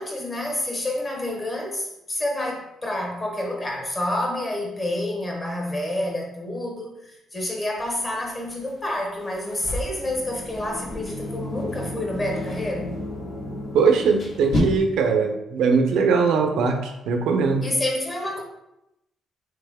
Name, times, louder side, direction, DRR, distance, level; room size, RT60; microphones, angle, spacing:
voice 1, 0.0-12.9 17.6-18.4, left 1 dB, 25° left, 0 dB, 1.2 m, -28 dB
sound 1, 7.8-14.6, left 1 dB, 50° left, 1.4 m, -35 dB
sound 2, 10.0-15.0, left 1 dB, 75° left, 1.0 m, -34 dB
voice 2, 13.7-17.7, right 5 dB, 80° right, 5 dB, 0.6 m, -21 dB
3.6 x 3.3 x 3.5 m, 0.86 s
cardioid pair, 90°, 0 cm